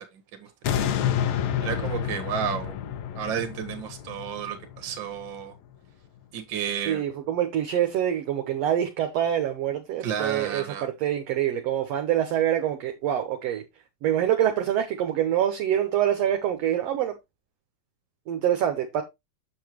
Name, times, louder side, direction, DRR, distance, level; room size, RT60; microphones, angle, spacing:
sound 1, 0.6-5.7 6.2-6.3, left 9 dB, 80° left, 1.5 m, -29 dB
voice 1, 1.6-2.7 3.1-5.5 6.3-7.0 10.0-10.9, right 8 dB, 50° right, 1.6 m, -32 dB
voice 2, 6.9-13.6 14.0-17.2 18.3-19.0, right 10 dB, 70° right, 1.6 m, -25 dB
7.7 x 6.9 x 3.0 m
omnidirectional pair, 3.8 m